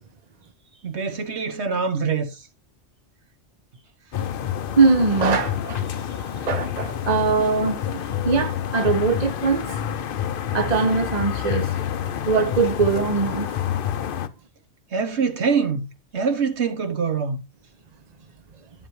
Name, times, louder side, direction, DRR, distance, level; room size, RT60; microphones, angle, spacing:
voice 1, 0.8-2.5 14.9-15.9 16.1-17.4, right 5 dB, 65° right, 1.4 m, -24 dB
sound 1, 4.1-14.3, left 9 dB, 55° left, 0.7 m, -28 dB
voice 2, 4.7-6.0 6.4-7.8 8.2-9.7 10.5-11.7 12.3-13.5, right 4 dB, 35° right, 1.1 m, -21 dB
11.0 x 7.5 x 3.2 m
omnidirectional pair, 1.2 m